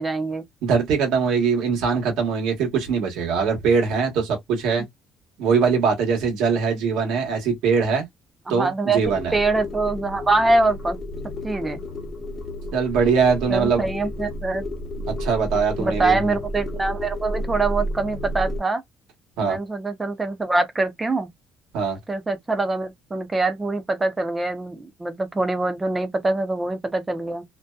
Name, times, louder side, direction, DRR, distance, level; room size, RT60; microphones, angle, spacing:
voice 1, 0.0-0.4 8.5-9.0 9.3-11.0 11.4-11.8 13.5-14.6 15.8-18.8 19.4-21.3 22.1-27.4, right 3 dB, 15° right, 0.5 m, -24 dB
voice 2, 0.6-4.8 5.4-8.0 8.5-9.4 12.7-13.9 15.1-16.3 19.4-19.6 21.7-22.0, right 5 dB, 85° right, 1.1 m, -22 dB
sound 1, 9.0-18.6, equal, 35° left, 0.8 m, -31 dB
2.6 x 2.2 x 2.2 m
cardioid pair, 145°, 0 cm